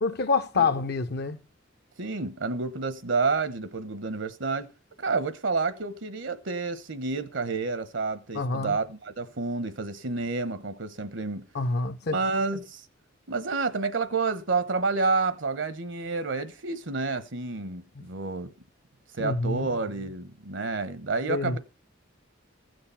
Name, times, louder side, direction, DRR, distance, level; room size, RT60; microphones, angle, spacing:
voice 1, 0.0-1.4 8.3-8.8 11.5-12.2 19.2-19.7 21.3-21.6, left 4 dB, 55° left, 0.7 m, -27 dB
voice 2, 2.0-4.7 5.0-11.5 12.1-12.8 13.3-18.5 19.2-21.6, right 4 dB, 70° right, 1.0 m, -29 dB
15.5 x 6.5 x 5.7 m
head